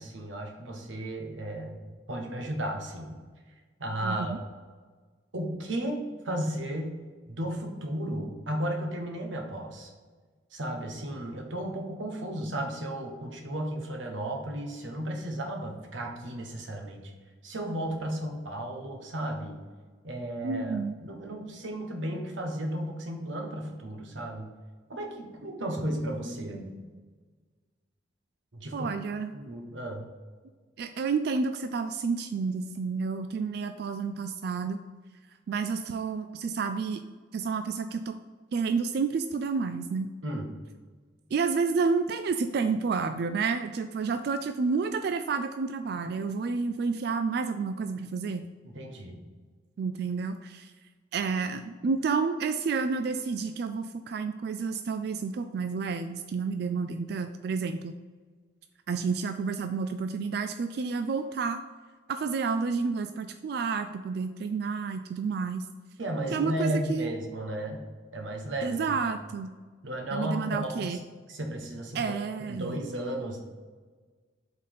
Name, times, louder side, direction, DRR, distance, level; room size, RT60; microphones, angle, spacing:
voice 1, 0.0-1.8 2.1-3.2 3.8-4.4 5.3-7.0 7.3-9.9 10.5-17.1 17.4-19.6 20.0-24.5 24.9-26.8 28.5-28.9 29.3-30.1 40.2-40.6 48.6-49.3 66.0-67.8 68.1-69.0 69.8-71.0 71.3-72.1 72.5-73.4, right 1 dB, 90° right, 2 dB, 1.2 m, -34 dB
voice 2, 4.0-4.4 20.4-20.9 28.7-29.3 30.8-34.8 35.5-37.0 37.3-38.1 38.5-40.1 41.3-48.4 49.8-50.7 51.1-58.0 58.9-61.6 62.1-65.6 66.3-67.1 68.6-69.5 70.1-71.0 71.9-72.8, right 5 dB, 60° right, 8 dB, 0.3 m, -30 dB
5.0 x 4.1 x 5.5 m, 1.4 s
head